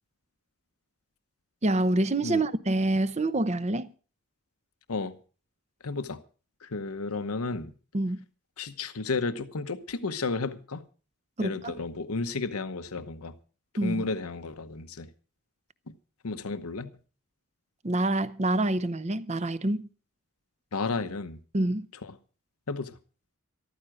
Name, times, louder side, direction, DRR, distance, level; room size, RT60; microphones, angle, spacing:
voice 1, 1.6-3.9 7.9-8.2 11.4-11.7 13.8-14.0 17.8-19.9 21.5-21.9, right 2 dB, 30° right, 0.7 m, -26 dB
voice 2, 5.8-6.2 6.6-7.7 8.6-10.8 11.4-13.4 13.8-15.1 16.2-16.9 20.7-21.4 22.7-22.9, left 3 dB, 90° left, 1.0 m, -32 dB
14.0 x 13.0 x 4.9 m
head